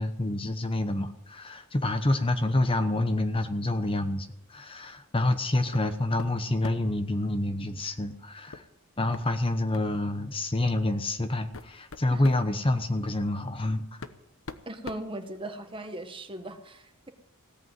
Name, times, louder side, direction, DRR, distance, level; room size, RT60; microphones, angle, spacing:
voice 1, 0.0-8.6 9.0-14.0, left 1 dB, 25° left, 8 dB, 1.0 m, -28 dB
sound 1, 5.7-5.9 6.2-7.0 8.5-8.7 9.1-9.3 9.7-9.9 10.8-10.9 11.3-12.5 13.5-13.6 14.0-15.8, left 3 dB, 70° left, 1.0 m, -43 dB
voice 2, 14.7-17.1, right 1 dB, 25° right, 7 dB, 1.4 m, -39 dB
17.0 x 8.4 x 9.4 m, 0.80 s
head